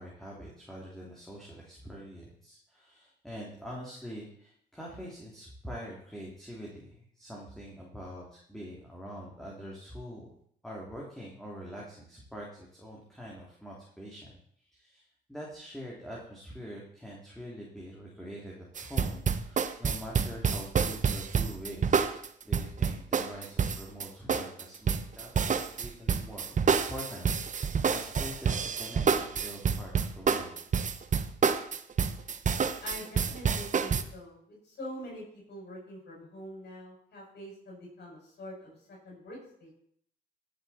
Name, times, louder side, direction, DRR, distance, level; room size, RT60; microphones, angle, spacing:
voice 1, 0.0-10.3 10.6-22.0 22.4-26.6 26.9-30.6, equal, ahead, -4 dB, 3.1 m, -44 dB
sound 1, 18.8-34.0, right 6 dB, 40° right, 0.9 m, -28 dB
voice 2, 32.8-39.7, equal, 60° left, -3 dB, 6.6 m, -45 dB
16.5 x 7.8 x 4.3 m, 0.66 s
cardioid pair, 90°, 20 cm